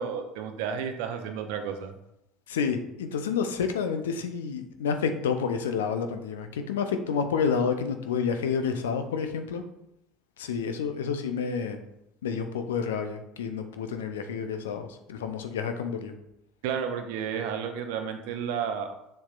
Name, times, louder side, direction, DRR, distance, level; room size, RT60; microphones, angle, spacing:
voice 1, 0.0-1.9 16.6-18.9, right 7 dB, 65° right, 6 dB, 0.7 m, -32 dB
voice 2, 2.5-9.6 10.4-11.8 12.2-16.1, left 6 dB, 75° left, 7 dB, 0.5 m, -29 dB
7.1 x 5.6 x 2.5 m, 0.83 s
figure-of-eight pair, 65°, 0 cm